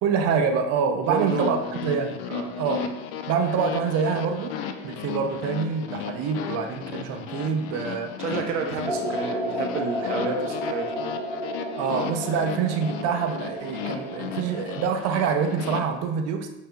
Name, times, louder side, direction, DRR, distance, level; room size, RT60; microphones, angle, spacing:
voice 1, 0.0-2.2 2.6-2.9 3.3-4.6 4.8-8.1 11.7-16.5, right 6 dB, 45° right, 5 dB, 0.5 m, -26 dB
sound 1, 1.1-15.8, left 7 dB, 65° left, 0.5 m, -35 dB
voice 2, 1.1-1.7 2.3-2.5 8.2-11.1, right 4 dB, 85° right, 3 dB, 0.6 m, -30 dB
sound 2, 8.8-14.8, equal, 5° left, 0.8 m, -32 dB
5.3 x 2.8 x 2.3 m, 0.92 s
hypercardioid pair, 75°, 35 cm